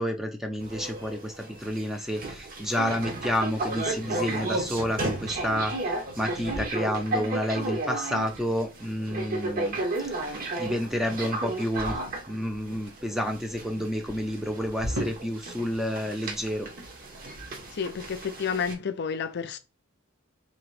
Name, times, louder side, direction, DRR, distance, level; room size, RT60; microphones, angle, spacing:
voice 1, 0.0-9.8 10.3-16.7 17.2-17.5, equal, ahead, 0.6 m, -30 dB
sound 1, 0.6-18.7, right 2 dB, 45° right, 0.8 m, -34 dB
sound 2, 3.5-15.8 16.1-17.7, equal, 75° right, 1.7 m, -43 dB
voice 2, 17.7-19.6, left 6 dB, 55° left, 0.5 m, -30 dB
4.0 x 2.9 x 3.2 m
head